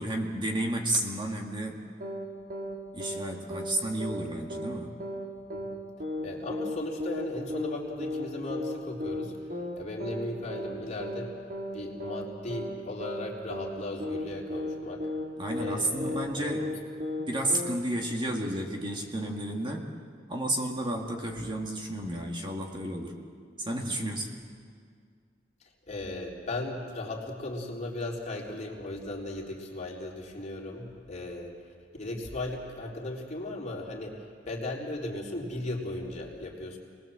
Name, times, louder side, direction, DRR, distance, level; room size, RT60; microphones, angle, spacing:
voice 1, 0.0-1.8 2.9-5.0 15.4-16.8 17.2-19.9 20.3-23.2 23.6-24.4, right 1 dB, 25° right, 1 dB, 2.0 m, -32 dB
sound 1, 2.0-2.3 2.5-2.8 3.0-3.3 3.5-3.8 4.0-4.3 4.5-4.8 5.0-5.3 5.5-5.8 6.0-6.3 6.5-6.8 7.0-7.3 7.5-7.8 8.0-8.3 8.5-8.8 9.0-9.3 9.5-9.8 10.0-10.3 10.5-10.8 11.0-11.3 11.5-11.8 12.0-12.3 12.5-12.8 13.0-13.3 13.5-13.8 14.0-14.3 14.5-14.8 15.0-15.3 15.5-16.3 16.5-16.8 17.0-17.3 17.5-17.8, left 1 dB, 50° right, 3.1 m, -34 dB
voice 2, 6.2-9.3 9.8-11.4 11.7-15.1 15.6-16.7 25.9-31.5 32.0-36.8, left 2 dB, 40° left, -2 dB, 3.8 m, -37 dB
28.5 x 20.5 x 7.6 m, 2.1 s
head